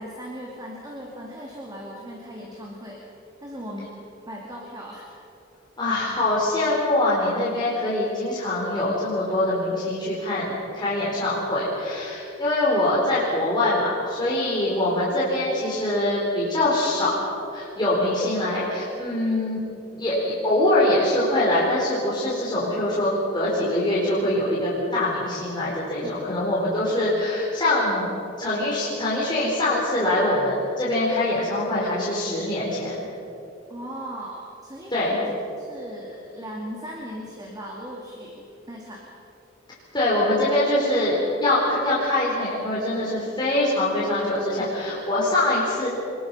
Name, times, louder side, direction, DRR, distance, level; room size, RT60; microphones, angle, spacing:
voice 1, 0.0-3.0 3.4-3.9 4.2-5.1 26.0-26.1 33.7-39.1, equal, 20° right, -2 dB, 2.6 m, -38 dB
voice 2, 5.8-17.1 17.5-19.6 19.9-28.1 28.4-33.1 34.9-35.2 39.9-45.9, left 1 dB, 25° left, -7 dB, 4.5 m, -23 dB
25.0 x 21.5 x 5.6 m, 2.9 s
head